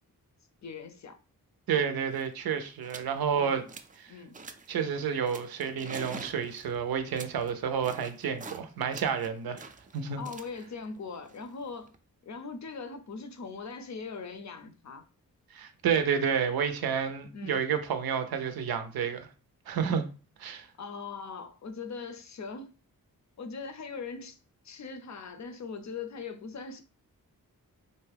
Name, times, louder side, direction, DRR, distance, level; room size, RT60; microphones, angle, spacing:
voice 1, 0.6-1.2 3.4-3.6 4.1-4.4 10.1-12.0 12.2-15.0 17.3-17.7 20.7-22.7 23.4-24.4 24.6-26.8, left 5 dB, 50° left, 0.5 m, -40 dB
voice 2, 1.7-3.6 4.7-9.7 9.9-10.2 15.5-19.3 19.7-20.0 20.4-20.7, right 7 dB, 85° right, 0.5 m, -30 dB
sound 1, 1.8-1.9 2.1-2.3 2.8-3.1 3.5-4.0 4.3-4.8 5.3-8.6 8.9-12.0, right 4 dB, 25° right, 0.3 m, -46 dB
2.6 x 2.2 x 3.3 m
cardioid pair, 55°, 35 cm